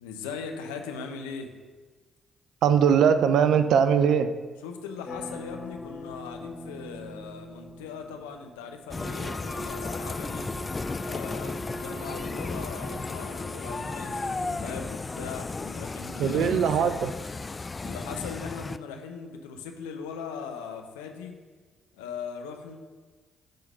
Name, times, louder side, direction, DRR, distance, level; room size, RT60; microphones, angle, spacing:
voice 1, 0.0-1.5 4.6-10.5 11.0-16.9 17.8-21.3 21.9-22.8, left 6 dB, 80° left, 4 dB, 0.7 m, -39 dB
voice 2, 2.6-4.3 16.2-17.1, right 7 dB, 65° right, 11 dB, 0.5 m, -21 dB
sound 1, 5.0-8.8, left 1 dB, 50° left, 2.0 m, -42 dB
sound 2, 8.9-18.8, left 3 dB, 30° left, 0.3 m, -34 dB
Wind instrument woodwind instrument, 8.9-14.7, equal, 10° left, 1.9 m, -41 dB
10.5 x 3.9 x 5.5 m, 1.4 s
hypercardioid pair, 45°, 0 cm